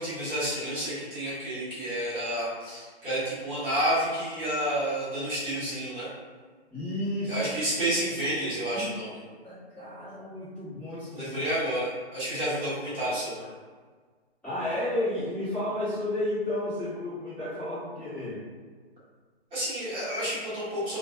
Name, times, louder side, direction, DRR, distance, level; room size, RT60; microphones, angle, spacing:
voice 1, 0.0-6.1 7.3-9.2 11.1-13.5 19.5-21.0, right 1 dB, 15° right, -12 dB, 1.2 m, -30 dB
voice 2, 6.7-7.4 8.7-8.9 9.4-11.4 14.4-18.4, left 1 dB, 5° left, -14 dB, 1.2 m, -32 dB
2.4 x 2.3 x 2.7 m, 1.5 s
hypercardioid pair, 145°, 33 cm